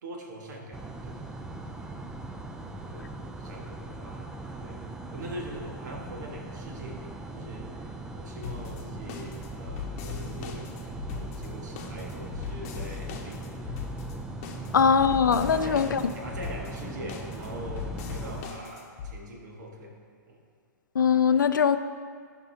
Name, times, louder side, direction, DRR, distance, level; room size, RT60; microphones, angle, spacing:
voice 1, 0.0-1.4 1.7-1.8 2.6-4.8 5.1-13.8 14.6-14.7 15.4-20.0 20.3-20.4, right 1 dB, 65° right, 0 dB, 1.6 m, -42 dB
sound 1, 0.7-18.4, right 2 dB, 5° right, 0.4 m, -40 dB
sound 2, 8.4-19.1, left 7 dB, 45° left, 0.9 m, -39 dB
voice 2, 14.7-16.0 21.0-21.8, left 6 dB, 85° left, 11 dB, 0.4 m, -21 dB
13.0 x 5.3 x 2.8 m, 2.1 s
hypercardioid pair, 120°, 10 cm